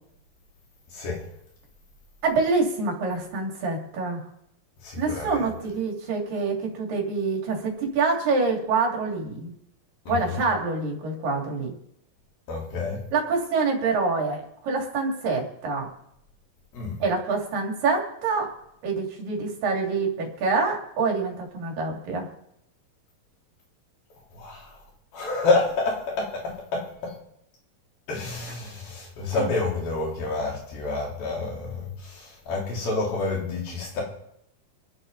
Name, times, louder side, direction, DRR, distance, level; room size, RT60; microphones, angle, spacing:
voice 1, 0.9-1.2 4.8-5.5 10.1-10.4 12.5-13.0 16.7-17.0 24.3-24.8 25.1-27.2 28.1-34.0, left 3 dB, 90° left, 5.7 m, -28 dB
voice 2, 2.2-4.3 5.0-9.5 10.1-11.8 13.1-15.9 17.0-18.5 18.8-22.3 29.3-29.5, right 4 dB, 70° right, 4.3 m, -26 dB
25.5 x 11.0 x 4.0 m
omnidirectional pair, 4.1 m